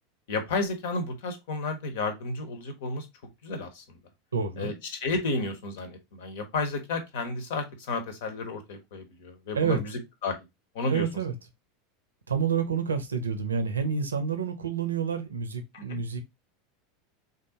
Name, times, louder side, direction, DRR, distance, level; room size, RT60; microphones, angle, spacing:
voice 1, 0.3-3.1 3.4-3.8 4.6-10.4 10.7-11.1 15.7-16.0, left 3 dB, 60° left, 0.8 m, -32 dB
voice 2, 4.3-4.7 9.5-9.8 10.9-11.3 12.3-16.2, right 6 dB, 75° right, 0.6 m, -28 dB
3.6 x 2.6 x 2.7 m
figure-of-eight pair, 80°, 0 cm